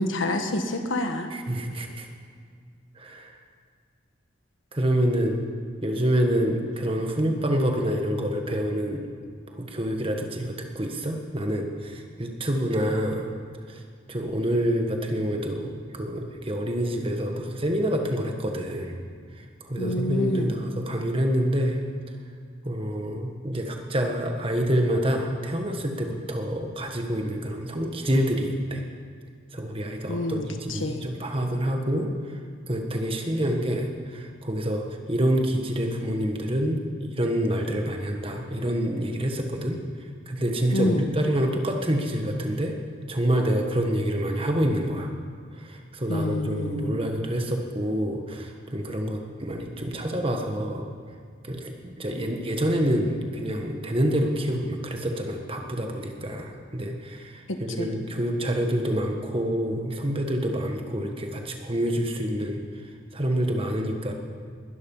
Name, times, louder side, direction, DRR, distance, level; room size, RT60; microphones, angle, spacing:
voice 1, 0.0-1.3 19.8-20.5 30.1-31.1 40.7-41.1 46.1-47.0 57.5-57.9, left 1 dB, 75° left, 6 dB, 1.5 m, -28 dB
voice 2, 1.3-2.1 2.9-3.4 4.7-5.4 5.8-9.1 9.5-13.3 13.7-13.8 14.1-19.0 19.3-21.8 22.6-28.8 29.5-32.4 32.7-39.8 40.3-42.7 43.1-45.1 45.5-50.9 51.4-62.8 63.1-64.1, equal, 25° right, 3 dB, 1.5 m, -27 dB
20.5 x 12.0 x 5.6 m, 2.1 s
head